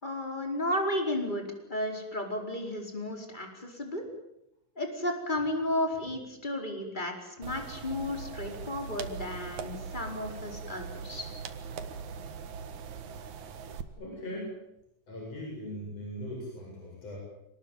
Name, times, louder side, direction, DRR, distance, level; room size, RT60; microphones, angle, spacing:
voice 1, 0.0-4.1 4.7-11.3, left 1 dB, 15° left, 3 dB, 4.7 m, -33 dB
sound 1, 7.4-13.8, right 6 dB, 75° right, 3.0 m, -41 dB
voice 2, 14.0-14.6 15.1-17.2, equal, 55° left, -2 dB, 9.0 m, -39 dB
27.0 x 19.5 x 9.5 m, 0.86 s
omnidirectional pair, 3.4 m